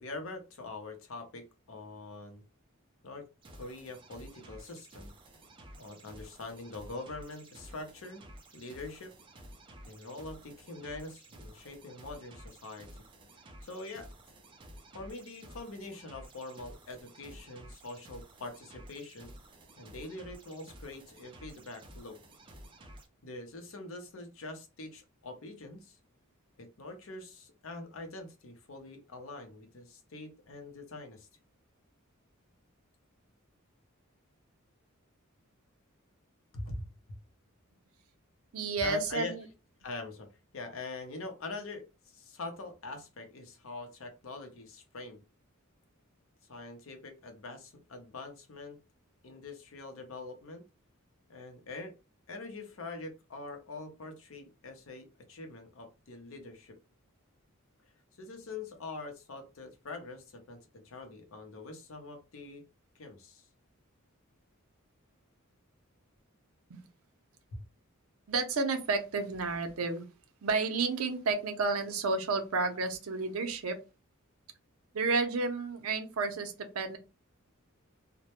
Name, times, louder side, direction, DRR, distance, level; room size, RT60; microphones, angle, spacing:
voice 1, 0.0-2.4 3.0-3.2 3.5-5.1 5.8-8.3 8.5-9.1 9.8-13.0 13.6-14.1 14.9-19.3 19.8-22.2 23.2-26.0 26.6-31.3 36.5-37.2 38.8-39.3 39.8-40.3 40.5-41.8 42.1-45.2 46.5-48.8 49.2-50.6 51.3-52.0 52.3-56.8 58.2-62.6 63.0-63.5 67.5-67.6, left 2 dB, 70° left, 5 dB, 0.6 m, -44 dB
sound 1, 3.4-23.1, right 1 dB, 25° right, 0.4 m, -52 dB
voice 2, 38.5-39.4 66.7-66.9 68.3-70.1 70.4-73.8 74.9-77.0, right 4 dB, 90° right, 7 dB, 0.5 m, -31 dB
2.1 x 2.1 x 2.9 m, 0.29 s
head